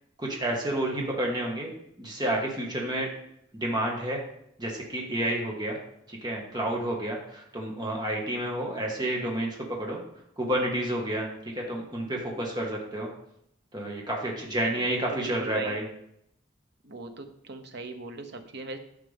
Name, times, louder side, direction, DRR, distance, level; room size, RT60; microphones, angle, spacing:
voice 1, 0.2-1.7 2.0-3.1 3.6-4.2 4.6-5.8 6.1-10.0 10.4-11.3 11.5-13.1 13.7-15.8, right 1 dB, 20° right, -2 dB, 1.8 m, -30 dB
voice 2, 14.7-15.8 16.8-18.8, right 3 dB, 55° right, 5 dB, 1.1 m, -39 dB
13.0 x 5.8 x 3.6 m, 0.75 s
head